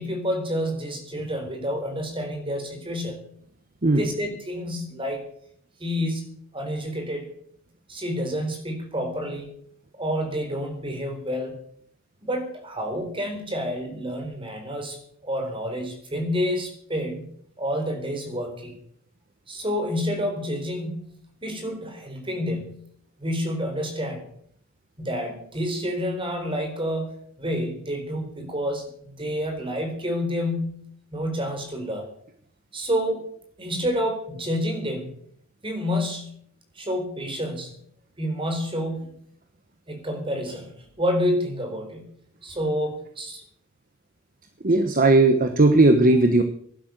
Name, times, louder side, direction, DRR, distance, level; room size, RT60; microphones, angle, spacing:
voice 1, 0.0-3.2 3.9-5.3 5.8-7.3 7.9-9.5 9.9-11.6 12.2-17.3 17.6-18.8 19.5-22.8 23.2-24.2 25.0-30.9 31.1-32.1 32.7-33.2 33.6-35.2 35.6-36.4 36.8-37.8 38.2-39.1 39.9-42.1 42.4-43.4, equal, 25° right, 4 dB, 4.1 m, -29 dB
voice 2, 44.6-46.4, right 2 dB, 45° right, 8 dB, 1.2 m, -17 dB
15.5 x 11.5 x 6.7 m, 0.65 s
head